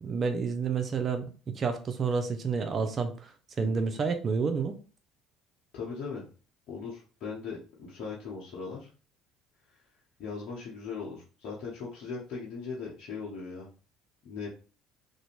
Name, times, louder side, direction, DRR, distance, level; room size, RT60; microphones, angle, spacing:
voice 1, 0.0-4.8, right 5 dB, 40° right, 7 dB, 0.5 m, -30 dB
voice 2, 5.7-6.2 6.7-8.9 10.2-13.7 14.2-14.5, left 5 dB, 60° left, -6 dB, 0.8 m, -39 dB
2.5 x 2.1 x 2.9 m, 0.36 s
hypercardioid pair, 70°, 0 cm